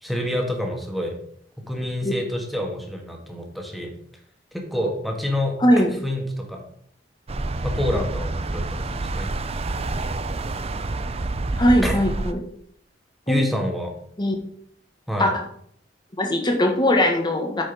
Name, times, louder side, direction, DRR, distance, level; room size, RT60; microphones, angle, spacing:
voice 1, 0.0-1.2 1.6-3.9 4.5-5.6 6.0-6.7 7.6-9.3 11.8-11.9 13.3-13.9 15.1-15.3, left 1 dB, ahead, 1 dB, 1.7 m, -27 dB
voice 2, 5.6-6.0 11.6-12.4 13.3-13.4 14.2-14.4 15.2-15.4 16.2-17.6, left 1 dB, 25° left, 3 dB, 1.5 m, -20 dB
sound 1, 7.3-12.3, right 2 dB, 35° right, 0.6 m, -28 dB
9.3 x 5.3 x 5.2 m, 0.65 s
head